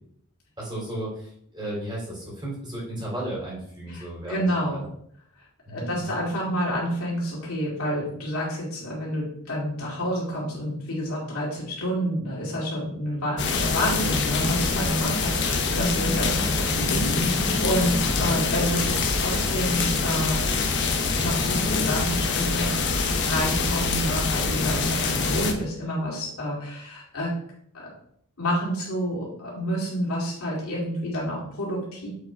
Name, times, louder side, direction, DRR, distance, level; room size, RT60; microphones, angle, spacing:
voice 1, 0.6-4.4 4.7-4.9 5.6-6.1, right 1 dB, 20° right, -4 dB, 2.6 m, -34 dB
voice 2, 3.9-4.9 5.7-20.9 21.2-22.7 23.3-27.3 27.7-27.9 28.4-32.1, equal, 80° left, -5 dB, 2.2 m, -29 dB
sound 1, 13.4-25.5, left 4 dB, 55° left, 0.9 m, -25 dB
7.3 x 3.8 x 4.4 m, 0.68 s
head